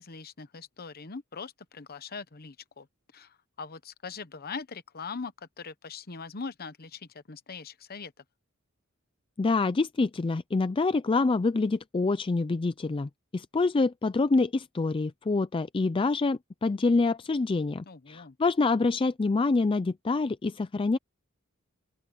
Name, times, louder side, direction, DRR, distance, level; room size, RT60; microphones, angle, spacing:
voice 1, 0.0-2.9 3.1-8.1 17.9-18.4, left 5 dB, 45° left, 1.0 m, -41 dB
voice 2, 9.4-21.0, left 3 dB, 25° left, 0.4 m, -26 dB
open air
head